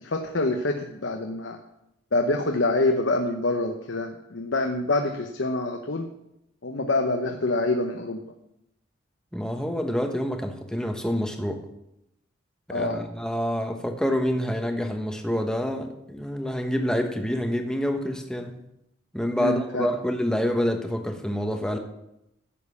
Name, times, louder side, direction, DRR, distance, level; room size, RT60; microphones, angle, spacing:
voice 1, 0.0-1.6 2.1-6.1 6.6-8.2 12.7-13.0 19.4-19.9, left 2 dB, 80° left, 4 dB, 0.9 m, -26 dB
voice 2, 9.3-11.6 12.7-18.6 19.1-21.8, equal, 5° left, 4 dB, 1.1 m, -27 dB
11.0 x 7.3 x 7.1 m, 0.84 s
head